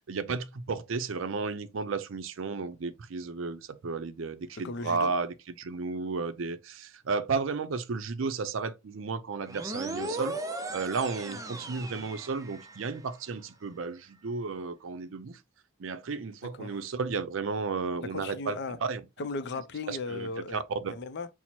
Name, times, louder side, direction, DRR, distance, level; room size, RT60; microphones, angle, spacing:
voice 1, 0.1-10.4 10.7-15.4 15.8-19.0 19.9-20.9, right 4 dB, 65° right, 0.5 m, -33 dB
voice 2, 4.6-5.1 16.6-16.7 18.1-18.8 19.2-20.6 20.9-21.3, left 3 dB, 55° left, 0.5 m, -36 dB
sound 1, 9.5-13.0, right 2 dB, 15° right, 0.4 m, -37 dB
4.4 x 2.0 x 4.2 m
head